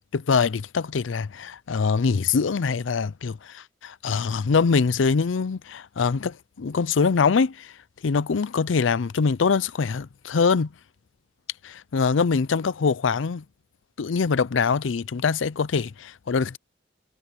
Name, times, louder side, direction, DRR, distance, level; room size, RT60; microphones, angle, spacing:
voice 1, 0.1-7.7 8.0-10.7 11.6-13.4 14.0-16.6, left 5 dB, 80° left, 0.5 m, -23 dB
head